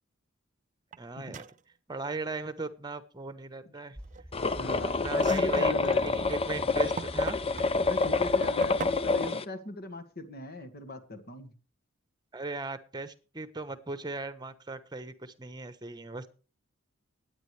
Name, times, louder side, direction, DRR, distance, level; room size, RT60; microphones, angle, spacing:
sound 1, 0.9-1.0 1.3-1.6 4.0-4.5 5.1-7.7 8.3-9.3, right 5 dB, 40° right, 0.5 m, -41 dB
voice 1, 1.0-1.5 1.9-4.0 5.0-5.7 6.3-7.4 12.3-16.3, right 3 dB, 20° right, 13 dB, 1.1 m, -38 dB
sound 2, 3.9-9.2, right 1 dB, 5° left, 2.5 m, -45 dB
sound 3, 4.3-9.4, left 3 dB, 30° left, 0.7 m, -27 dB
voice 2, 4.6-6.1 7.9-11.5, left 2 dB, 50° left, 9 dB, 2.0 m, -38 dB
19.5 x 9.3 x 3.3 m, 0.37 s
head